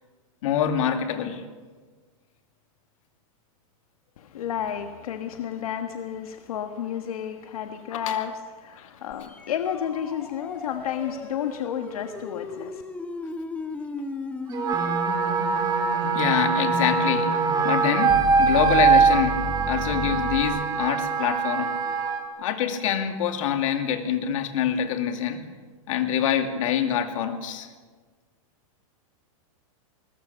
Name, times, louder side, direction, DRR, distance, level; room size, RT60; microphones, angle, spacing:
voice 1, 0.4-1.4 7.9-8.2 8.8-8.9 12.6-12.7 16.1-17.4 17.6-19.4 19.7-21.8 22.4-25.4 25.9-27.7, left 8 dB, 65° left, 6 dB, 2.6 m, -25 dB
voice 2, 4.2-8.3 8.6-12.8, left 9 dB, 90° left, 6 dB, 1.5 m, -31 dB
sound 1, 9.1-20.4, left 1 dB, 10° left, 1.7 m, -34 dB
Wind instrument woodwind instrument, 14.5-22.2, right 5 dB, 20° right, 2.8 m, -23 dB
21.5 x 19.5 x 6.9 m, 1.5 s
supercardioid pair, 160°, 18 cm